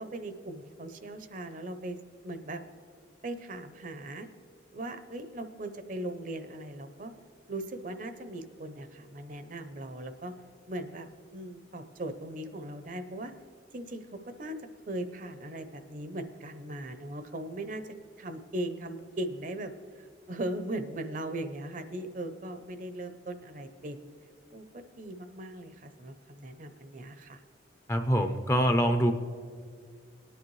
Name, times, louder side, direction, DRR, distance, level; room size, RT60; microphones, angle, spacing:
voice 1, 0.0-2.0 2.2-2.6 3.2-4.3 4.7-7.1 7.5-10.3 10.7-13.3 13.7-14.6 14.9-19.7 20.0-24.1 24.5-27.4, right 1 dB, 45° right, 9 dB, 0.6 m, -39 dB
voice 2, 27.9-29.1, equal, 15° left, 6 dB, 0.5 m, -24 dB
19.0 x 10.0 x 3.2 m, 2.2 s
head